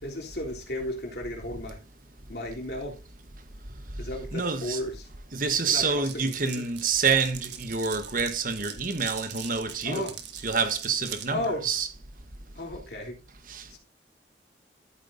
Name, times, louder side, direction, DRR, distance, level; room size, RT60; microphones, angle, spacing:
voice 1, 0.0-1.8 2.3-3.0 4.0-5.1 5.7-6.7 9.8-10.1 11.3-11.7 12.5-13.1 13.7-13.8, left 1 dB, 60° left, 3.2 m, -34 dB
voice 2, 4.3-4.8 5.3-10.1 10.4-11.9 13.5-13.6, right 5 dB, 45° right, 1.2 m, -27 dB
Glass, 6.0-11.3, right 10 dB, 75° right, 1.6 m, -41 dB
13.0 x 8.7 x 2.6 m
head